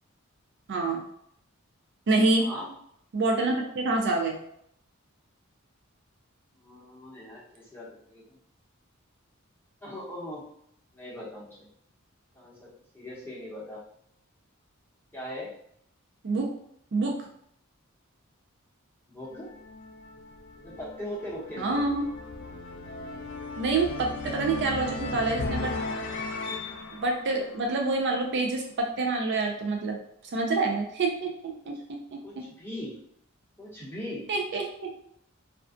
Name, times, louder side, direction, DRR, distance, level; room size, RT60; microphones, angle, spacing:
voice 1, 0.7-1.0 2.1-2.5 3.1-4.4 16.2-16.5 16.9-17.3 21.6-22.1 23.6-25.7 26.9-30.0 30.3-31.8 32.1-32.4 34.3-34.9, right 3 dB, 55° right, 2 dB, 0.4 m, -27 dB
voice 2, 2.4-2.7 6.6-8.4 9.8-10.4 10.9-11.7 12.3-12.7 12.9-13.8 15.1-15.5 19.1-19.6 20.6-21.8 32.2-33.0 33.6-34.3, left 1 dB, 10° left, -8 dB, 0.8 m, -40 dB
sound 1, 19.2-28.3, left 3 dB, 55° left, 0.3 m, -37 dB
2.4 x 2.2 x 2.4 m, 0.70 s
head